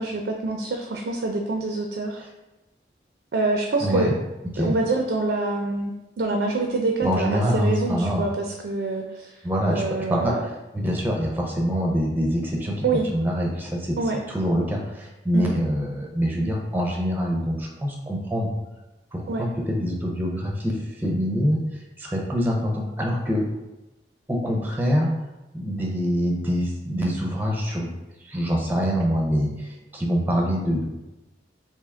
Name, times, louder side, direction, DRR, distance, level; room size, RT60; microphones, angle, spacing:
voice 1, 0.0-2.2 3.3-4.1 4.6-5.9 6.2-9.4 9.7-10.4 12.8-13.1 14.0-14.2 15.3-15.5 19.3-19.4, right 3 dB, 70° right, 2 dB, 0.4 m, -26 dB
voice 2, 3.8-4.2 4.5-4.8 7.0-8.2 9.4-9.8 10.1-10.3 10.7-12.8 13.1-14.0 14.3-18.5 19.1-21.6 22.0-23.4 24.3-25.1 25.5-27.9 28.2-30.8, equal, 10° right, -1 dB, 0.5 m, -25 dB
3.4 x 2.8 x 3.5 m, 1.0 s
head